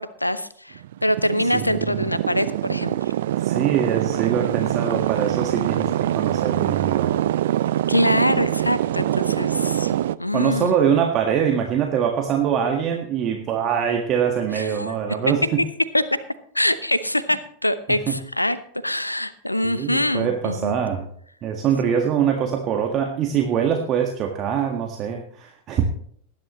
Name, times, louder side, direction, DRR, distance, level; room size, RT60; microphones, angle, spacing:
voice 1, 0.0-3.1 7.9-9.9 10.2-10.7 14.5-15.2 15.9-16.0 16.5-18.6 18.8-20.7, left 1 dB, 85° left, 15 dB, 0.8 m, -24 dB
sound 1, 0.8-10.2, right 12 dB, 55° right, 0.4 m, -24 dB
voice 2, 1.5-2.0 3.4-7.1 10.3-15.6 17.9-18.2 19.6-21.1 21.4-25.8, right 8 dB, 35° right, 2 dB, 1.7 m, -23 dB
19.0 x 10.5 x 3.1 m, 0.63 s
figure-of-eight pair, 90°, 0 cm